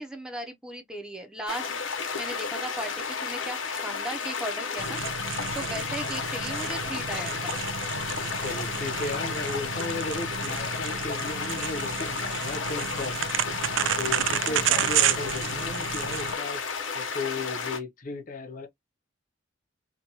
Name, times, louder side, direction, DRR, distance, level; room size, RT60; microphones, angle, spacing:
voice 1, 0.0-1.7 2.2-5.0 5.5-7.6 14.7-14.9, right 1 dB, 5° right, 0.5 m, -37 dB
sound 1, 1.5-17.8, left 5 dB, 75° left, 0.8 m, -32 dB
sound 2, 4.8-16.3, right 10 dB, 70° right, 0.3 m, -31 dB
voice 2, 8.4-13.3 14.0-16.6 16.9-18.7, left 3 dB, 45° left, 0.6 m, -35 dB
2.9 x 2.2 x 2.7 m
head